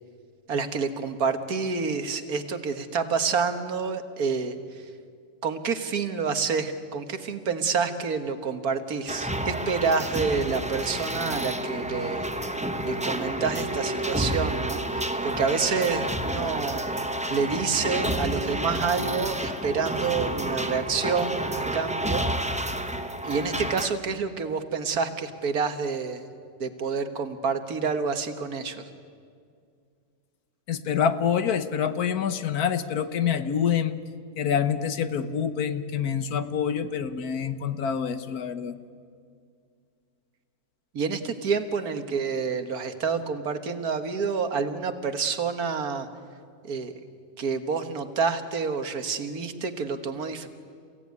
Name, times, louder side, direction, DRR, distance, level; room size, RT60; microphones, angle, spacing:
voice 1, 0.5-4.8 5.4-12.3 12.8-16.8 17.3-22.3 23.2-26.2 26.6-28.8 40.9-46.1 46.6-46.9 47.4-50.5, right 5 dB, 70° right, 8 dB, 1.9 m, -28 dB
sound 1, 9.1-23.9, right 1 dB, 5° right, 0.8 m, -30 dB
voice 2, 30.7-34.0 34.4-38.7, left 8 dB, 70° left, 11 dB, 1.5 m, -26 dB
29.5 x 16.5 x 9.5 m, 2.2 s
omnidirectional pair, 1.6 m